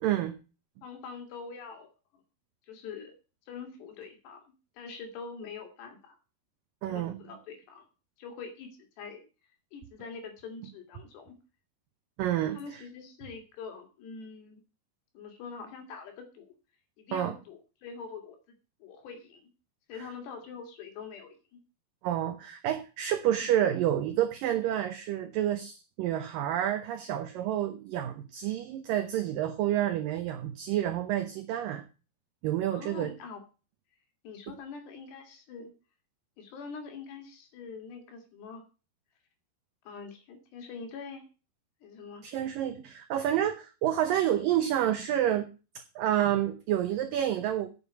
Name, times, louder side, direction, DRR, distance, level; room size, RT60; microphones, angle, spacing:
voice 1, 0.0-0.3 6.8-7.2 12.2-12.8 17.1-17.3 22.0-31.8 32.4-33.1 42.2-45.5 46.0-47.7, right 11 dB, 75° right, 7 dB, 2.1 m, -29 dB
voice 2, 0.8-2.2 2.7-3.1 3.5-4.4 4.8-6.2 6.9-7.9 8.2-9.3 9.7-11.4 12.5-14.6 15.1-16.5 17.0-19.5 19.9-21.6 32.7-33.4 34.2-35.7 36.4-38.6 39.9-41.2 41.8-42.3 46.2-46.4, left 5 dB, 75° left, 5 dB, 4.1 m, -44 dB
8.8 x 7.3 x 8.1 m, 0.34 s
omnidirectional pair, 4.9 m